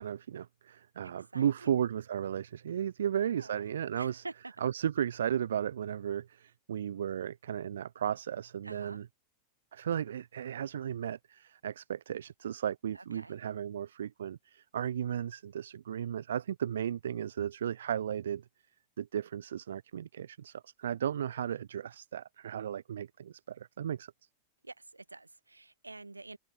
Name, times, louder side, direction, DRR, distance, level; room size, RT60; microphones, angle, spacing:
voice 1, 0.0-4.2 4.6-9.1 9.7-18.4 19.0-24.1, right 9 dB, 65° right, 0.8 m, -35 dB
voice 2, 1.0-1.8 3.0-3.7 4.0-4.5 8.6-9.0 12.9-13.3 24.6-26.4, right 3 dB, 80° right, 6.0 m, -48 dB
open air
figure-of-eight pair, 90°, 0 cm